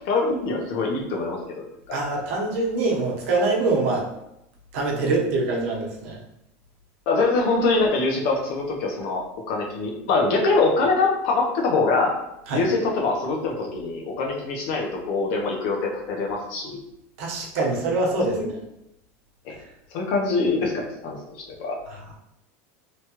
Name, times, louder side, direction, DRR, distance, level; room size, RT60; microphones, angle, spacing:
voice 1, 0.1-2.0 7.1-12.1 12.5-16.8 18.2-18.5 19.4-19.5 19.9-21.2 21.5-21.8, left 3 dB, 60° left, 0 dB, 0.7 m, -24 dB
voice 2, 1.9-4.1 4.7-6.2 12.5-12.7 17.2-18.4 21.9-22.1, right 3 dB, 75° right, -2 dB, 0.8 m, -24 dB
3.0 x 2.3 x 2.9 m, 0.84 s
supercardioid pair, 150°, 7 cm